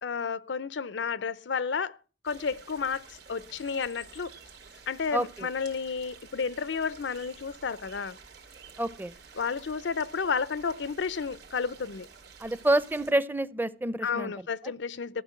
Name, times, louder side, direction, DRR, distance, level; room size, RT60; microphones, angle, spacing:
voice 1, 0.0-2.0 2.2-4.3 4.9-8.2 9.4-12.1 14.0-15.2, left 5 dB, 90° left, 0.6 m, -31 dB
sound 1, 2.2-13.1, right 5 dB, 70° right, 2.7 m, -51 dB
voice 2, 5.1-5.5 8.8-9.1 12.4-14.3, right 1 dB, 10° right, 0.6 m, -28 dB
14.5 x 6.7 x 7.6 m
head